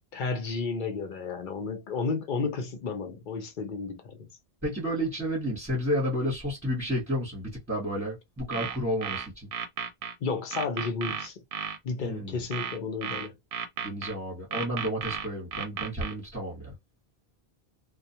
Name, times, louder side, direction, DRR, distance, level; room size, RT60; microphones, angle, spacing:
voice 1, 0.0-4.3 10.2-11.4 11.8-13.4, left 4 dB, 55° left, 0.7 m, -32 dB
voice 2, 4.6-9.5 12.0-12.4 13.8-16.7, equal, 15° right, 1.0 m, -31 dB
sound 1, 8.4-10.1 10.5-11.8 12.5-14.1 14.5-16.1, right 7 dB, 65° right, 0.7 m, -34 dB
2.3 x 2.2 x 2.7 m
omnidirectional pair, 1.0 m